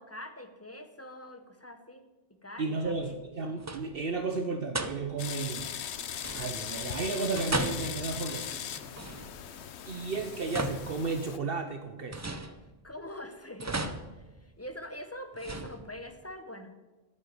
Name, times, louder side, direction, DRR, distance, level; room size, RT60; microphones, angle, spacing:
voice 1, 0.0-2.1 2.4-3.2 12.8-16.8, left 1 dB, 15° left, 7 dB, 0.9 m, -44 dB
voice 2, 2.6-5.7 6.3-8.6 9.9-12.2, right 4 dB, 55° right, 7 dB, 1.0 m, -33 dB
sound 1, 2.8-3.3 3.6-4.1 4.7-5.4 6.2-6.8 7.3-9.6 10.2-11.5 12.1-13.1 13.6-14.8 15.3-16.2, right 2 dB, 20° right, 0.4 m, -37 dB
sound 2, 5.2-11.4, left 9 dB, 65° left, 1.0 m, -39 dB
9.1 x 7.7 x 9.3 m, 1.2 s
omnidirectional pair, 1.2 m